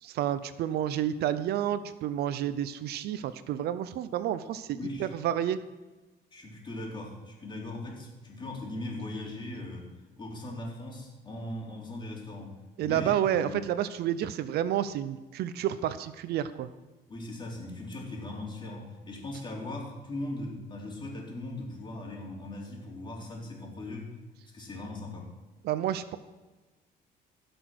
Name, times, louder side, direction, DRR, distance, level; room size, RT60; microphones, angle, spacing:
voice 1, 0.0-5.6 12.8-16.7 25.6-26.2, right 11 dB, 70° right, 13 dB, 0.7 m, -30 dB
voice 2, 4.7-5.1 6.3-9.9 10.2-13.6 17.1-24.1 24.5-25.3, left 2 dB, 30° left, -1 dB, 3.6 m, -39 dB
16.5 x 6.2 x 6.2 m, 1.2 s
cardioid pair, 110°, 17 cm